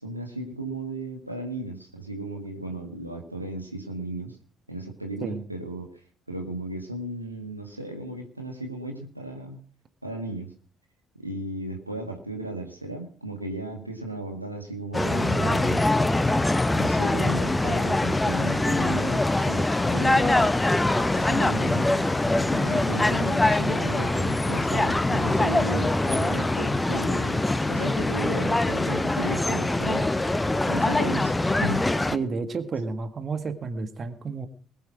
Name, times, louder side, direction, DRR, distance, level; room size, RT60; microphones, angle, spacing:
voice 1, 0.0-4.4 4.7-5.9 6.3-9.6 10.0-10.5 11.2-15.8 16.7-20.5 21.1-22.0 22.4-31.9, right 2 dB, 90° right, 3 dB, 1.9 m, -35 dB
sound 1, 14.9-32.2, left 2 dB, 15° left, 0.9 m, -23 dB
voice 2, 32.1-34.5, right 4 dB, 35° right, 10 dB, 1.7 m, -31 dB
20.5 x 8.5 x 6.1 m, 0.43 s
figure-of-eight pair, 50°, 0 cm